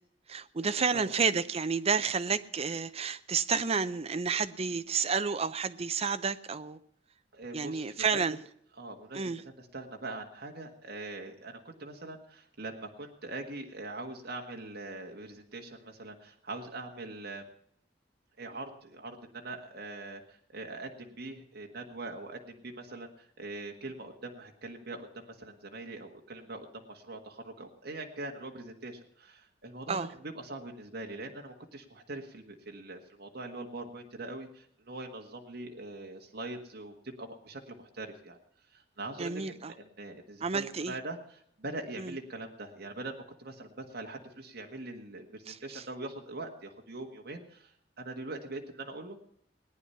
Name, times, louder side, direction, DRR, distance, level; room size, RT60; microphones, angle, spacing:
voice 1, 0.3-6.8 7.5-8.4 9.1-9.4 29.9-30.1 39.2-39.7 40.4-40.9 42.0-42.2 45.5-45.8, right 5 dB, 35° right, 0.6 m, -30 dB
voice 2, 7.3-8.2 8.8-17.5 18.4-38.4 38.7-49.2, right 2 dB, 60° right, 1.7 m, -42 dB
19.0 x 9.9 x 5.7 m
head